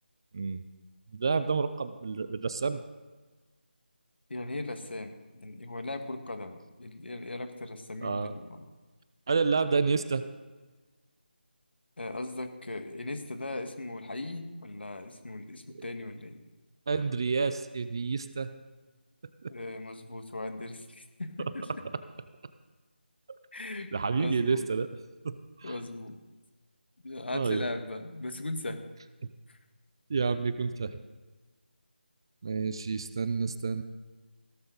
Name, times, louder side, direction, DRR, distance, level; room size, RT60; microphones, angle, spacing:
voice 1, 1.1-2.8 8.0-8.3 9.3-10.2 15.7-15.8 16.9-18.5 19.4-19.5 23.9-24.9 25.2-25.7 27.3-27.6 30.1-31.0 32.4-33.8, right 4 dB, 25° right, 12 dB, 0.4 m, -29 dB
voice 2, 4.3-8.6 12.0-16.4 19.5-21.8 23.5-23.9 24.2-24.7 25.6-26.2 27.0-28.8 29.5-29.6, left 2 dB, 70° left, 7 dB, 1.9 m, -38 dB
16.5 x 13.0 x 4.0 m, 1.3 s
figure-of-eight pair, 170°, 6 cm